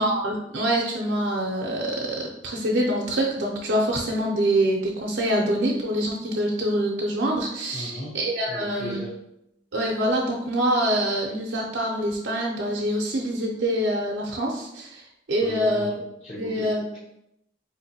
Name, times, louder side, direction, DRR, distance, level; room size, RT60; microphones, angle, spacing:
voice 1, 0.0-9.0 9.7-15.9 16.4-16.8, right 1 dB, 85° right, -2 dB, 0.5 m, -25 dB
voice 2, 7.7-8.2 8.5-9.2 15.4-17.0, left 1 dB, 35° left, -9 dB, 0.6 m, -37 dB
4.1 x 2.6 x 2.7 m, 0.81 s
head